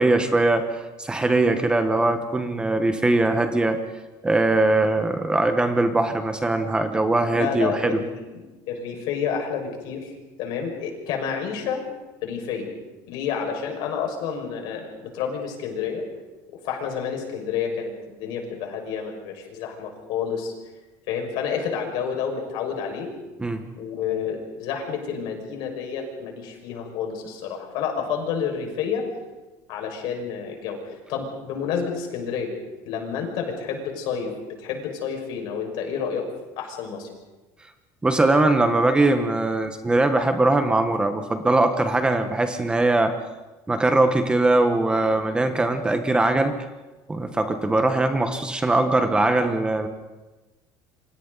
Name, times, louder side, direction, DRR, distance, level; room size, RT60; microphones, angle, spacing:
voice 1, 0.0-3.8 4.2-8.0 23.4-23.6 38.0-43.1 43.7-46.6 47.1-49.9, right 2 dB, 10° right, 7 dB, 1.2 m, -21 dB
voice 2, 7.3-10.1 10.4-11.8 12.2-12.7 13.1-16.0 16.6-20.5 21.1-23.1 23.8-29.0 29.7-32.5 32.8-36.3 36.6-37.1, left 7 dB, 65° left, 3 dB, 5.6 m, -29 dB
29.0 x 25.0 x 4.1 m, 1.2 s
cardioid pair, 150°, 8 cm